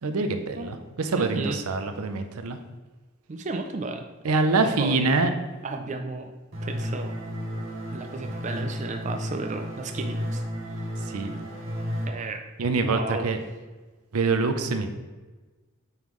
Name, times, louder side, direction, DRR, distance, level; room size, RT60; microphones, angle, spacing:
voice 1, 0.0-2.6 4.2-5.3 11.1-11.3 12.6-13.4 14.1-14.9, right 3 dB, 90° right, 8 dB, 0.6 m, -25 dB
voice 2, 1.1-1.6 3.3-4.1 4.8-5.1 5.6-6.3 6.6-7.1 7.9-10.4 10.8-10.9 12.1-12.4 12.7-13.3, right 3 dB, 35° right, 5 dB, 0.4 m, -33 dB
sound 1, 6.5-12.1, equal, 60° right, 1.1 m, -33 dB
8.8 x 3.8 x 3.1 m, 1.3 s
head